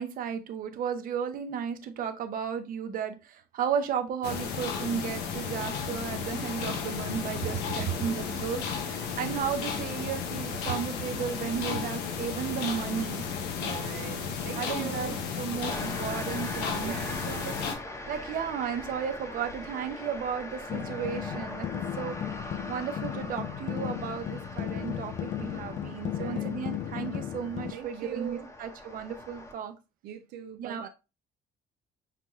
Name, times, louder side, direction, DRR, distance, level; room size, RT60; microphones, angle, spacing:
voice 1, 0.0-13.2 14.6-16.9 17.3-17.6 18.1-21.7 22.0-22.1 22.7-29.7 30.6-30.9, right 7 dB, 55° right, 0.7 m, -34 dB
sound 1, 4.2-17.8, left 6 dB, 85° left, 0.9 m, -33 dB
voice 2, 13.6-15.2 16.8-17.4 26.2-26.6 27.7-28.5 30.0-30.9, right 13 dB, 85° right, 0.4 m, -40 dB
sound 2, 15.7-29.5, left 1 dB, 15° left, 0.9 m, -42 dB
sound 3, 20.7-27.7, left 10 dB, 50° left, 0.4 m, -35 dB
5.8 x 2.3 x 3.0 m
cardioid pair, 110°, 17 cm